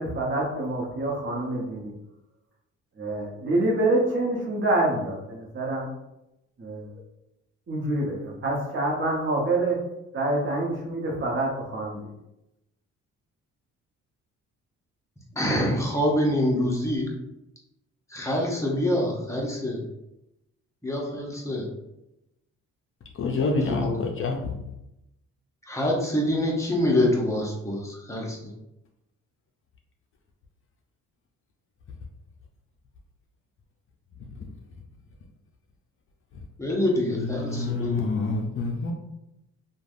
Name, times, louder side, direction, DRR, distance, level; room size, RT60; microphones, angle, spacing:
voice 1, 0.0-1.9 3.0-5.9 6.6-6.9 7.7-9.8 10.1-12.1, right 2 dB, 40° right, -1 dB, 0.8 m, -26 dB
voice 2, 15.3-17.1 18.1-19.8 20.8-21.6 23.6-24.0 25.7-28.4 36.6-38.1, left 1 dB, 10° left, -3 dB, 0.7 m, -25 dB
voice 3, 23.2-24.5 37.1-38.9, left 3 dB, 45° left, 1 dB, 0.5 m, -27 dB
3.2 x 2.2 x 2.5 m, 0.89 s
cardioid pair, 90°, 30 cm